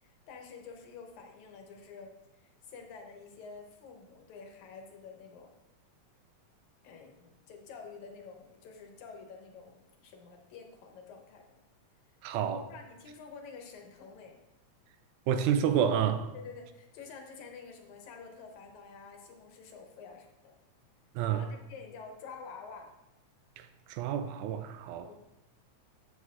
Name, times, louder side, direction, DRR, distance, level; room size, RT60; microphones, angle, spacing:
voice 1, 0.0-5.5 6.8-11.6 12.4-14.4 16.3-20.5 21.3-22.9 25.0-25.2, left 5 dB, 75° left, 2.2 m, -49 dB
voice 2, 12.2-12.6 15.3-16.3 21.2-21.4 23.6-25.1, right 8 dB, 80° right, 1.9 m, -29 dB
12.5 x 6.5 x 2.5 m
omnidirectional pair, 3.5 m